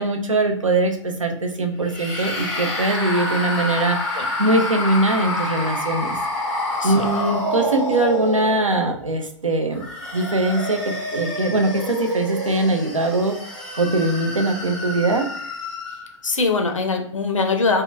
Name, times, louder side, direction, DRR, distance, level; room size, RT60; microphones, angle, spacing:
voice 1, 0.0-4.0 4.4-6.2 6.8-9.8 10.1-13.4 13.8-15.3, right 2 dB, 80° right, 5 dB, 0.5 m, -21 dB
sound 1, 1.8-8.9 9.6-16.1, left 1 dB, 5° left, 0.6 m, -28 dB
voice 2, 15.9-17.8, left 4 dB, 80° left, 4 dB, 0.5 m, -22 dB
2.8 x 2.2 x 2.2 m, 0.65 s
figure-of-eight pair, 115°, 16 cm